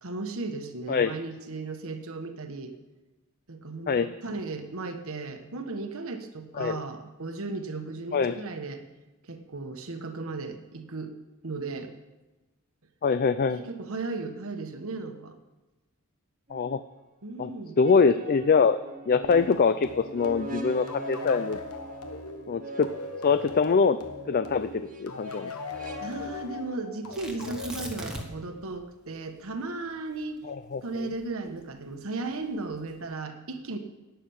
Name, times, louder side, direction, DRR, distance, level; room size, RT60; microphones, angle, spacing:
voice 1, 0.0-2.7 3.5-8.8 9.2-11.1 11.4-12.0 13.5-15.4 17.2-17.8 26.0-30.4 30.8-33.8, right 3 dB, 65° right, 6 dB, 1.3 m, -36 dB
voice 2, 13.0-13.6 16.5-16.8 17.4-17.5 17.8-18.8 19.1-21.6 22.5-22.9 23.2-24.0 24.3-25.5 30.5-30.8, left 5 dB, 40° left, 12 dB, 0.4 m, -23 dB
sound 1, 16.5-16.7 17.8-26.0, right 3 dB, 40° right, 1.6 m, -42 dB
sound 2, 19.3-28.5, left 4 dB, 90° left, 1.3 m, -40 dB
Tearing, 27.1-28.5 28.8-28.9 29.4-31.8 32.5-33.0, equal, 5° right, 1.6 m, -40 dB
11.5 x 9.3 x 7.1 m, 1.1 s
head